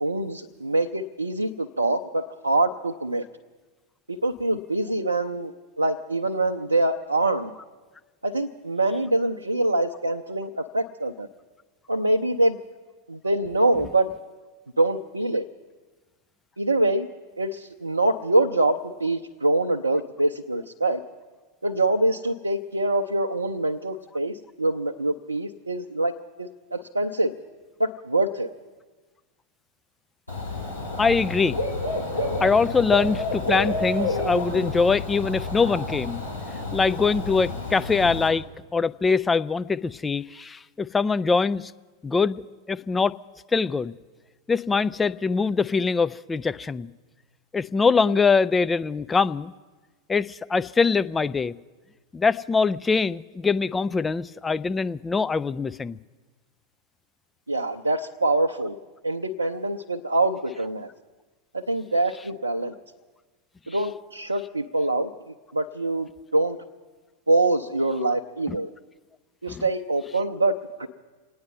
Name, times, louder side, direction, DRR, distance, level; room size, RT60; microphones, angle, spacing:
voice 1, 0.0-3.2 4.1-7.5 8.2-11.3 11.9-12.6 13.1-14.1 14.8-15.4 16.6-17.1 17.4-21.0 21.6-27.3 27.8-28.5 57.5-58.8 59.0-60.9 61.5-62.7 63.7-65.1 65.5-66.6 67.3-68.7 69.4-70.9, right 2 dB, 80° right, 2 dB, 0.6 m, -24 dB
Dog / Bird, 30.3-38.3, left 2 dB, 80° left, 3.1 m, -29 dB
voice 2, 31.0-31.6 32.4-36.2 36.7-38.5 38.7-41.7 42.0-43.2 43.5-43.9 44.5-46.9 47.5-49.5 50.1-51.5 52.1-56.0 68.5-68.6 69.5-69.6, left 4 dB, 15° left, 13 dB, 0.4 m, -23 dB
27.5 x 9.5 x 5.5 m, 1.3 s
figure-of-eight pair, 90°, 0 cm